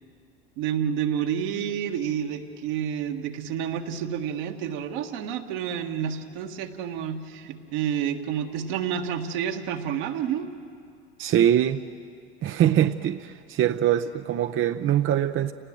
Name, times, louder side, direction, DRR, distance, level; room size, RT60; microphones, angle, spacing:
voice 1, 0.6-10.5, right 8 dB, 65° right, 4 dB, 1.7 m, -29 dB
voice 2, 11.2-11.9 12.4-15.5, right 11 dB, 40° right, 9 dB, 0.6 m, -23 dB
29.5 x 18.5 x 7.7 m, 2.4 s
hypercardioid pair, 80°, 34 cm